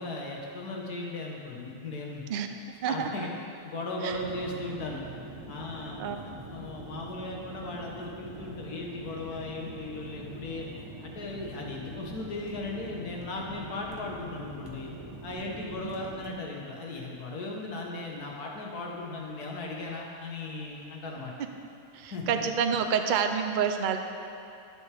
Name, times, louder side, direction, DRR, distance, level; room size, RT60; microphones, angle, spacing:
voice 1, 0.0-2.2 2.9-3.3 3.6-5.0 5.5-10.7 11.0-14.9 15.2-21.4 22.1-22.2, left 2 dB, 90° left, -1 dB, 1.8 m, -37 dB
sound 1, 4.1-16.3, right 1 dB, 20° right, 0.7 m, -44 dB
voice 2, 21.9-24.0, right 7 dB, 80° right, 6 dB, 0.4 m, -28 dB
11.0 x 10.0 x 3.5 m, 2.6 s
omnidirectional pair, 1.6 m